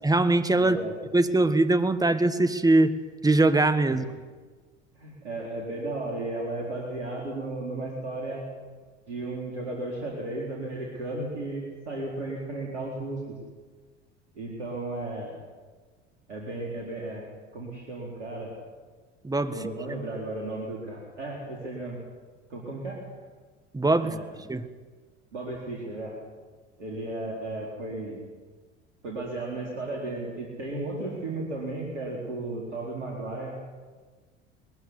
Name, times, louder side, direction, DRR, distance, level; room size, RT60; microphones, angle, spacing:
voice 1, 0.0-0.8 1.1-2.9 3.2-4.0 19.2-19.5 23.7-24.1 24.5-24.7, right 2 dB, 10° right, 10 dB, 1.6 m, -22 dB
voice 2, 0.6-0.9 3.9-4.1 4.9-8.4 9.1-13.4 14.3-15.4 16.3-17.3 17.5-18.5 19.5-22.0 22.5-23.0 24.0-24.3 25.3-26.2 26.8-28.2 29.0-33.5, right 2 dB, 75° right, -2 dB, 4.3 m, -34 dB
20.5 x 16.0 x 9.9 m, 1.4 s
figure-of-eight pair, 65°, 35 cm